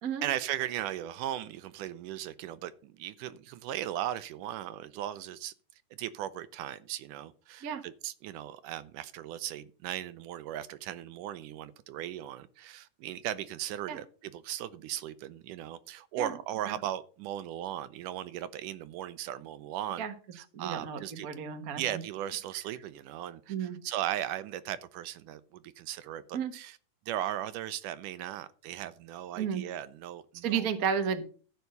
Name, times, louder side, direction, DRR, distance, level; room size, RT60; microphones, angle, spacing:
voice 1, 0.2-5.5 6.0-20.1 20.3-21.3 21.8-26.8 27.1-30.7, right 12 dB, 75° right, 2.1 m, -37 dB
voice 2, 20.5-22.0 23.5-23.8 26.3-26.5 29.4-29.6 30.4-31.3, right 7 dB, 60° right, 0.9 m, -32 dB
14.0 x 5.8 x 6.6 m
omnidirectional pair, 3.9 m